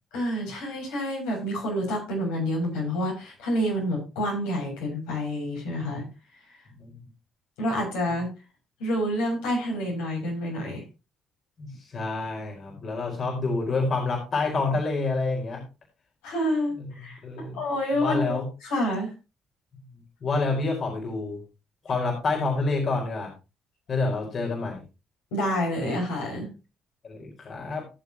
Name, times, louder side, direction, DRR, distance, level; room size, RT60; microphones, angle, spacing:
voice 1, 0.1-6.1 7.6-8.3 8.8-10.8 16.2-18.4 18.6-19.1 25.3-26.5, equal, 80° left, -2 dB, 7.0 m, -28 dB
voice 2, 6.7-7.0 8.1-8.2 11.6-15.6 16.8-16.9 17.2-17.6 17.9-18.5 20.2-21.4 21.8-23.3 23.9-24.8 27.0-27.9, left 3 dB, 50° left, 0 dB, 4.7 m, -28 dB
18.5 x 7.4 x 2.9 m, 0.29 s
hypercardioid pair, 50°, 0 cm